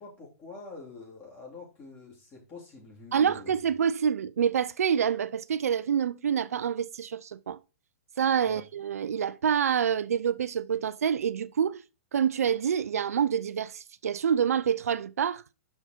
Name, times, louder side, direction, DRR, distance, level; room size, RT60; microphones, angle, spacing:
voice 1, 0.0-3.6 8.4-8.6, left 3 dB, 25° left, 3.2 m, -46 dB
voice 2, 3.1-7.6 8.2-11.8 12.1-15.4, right 8 dB, 90° right, 0.4 m, -27 dB
5.8 x 5.7 x 4.3 m
hypercardioid pair, 140°, 8 cm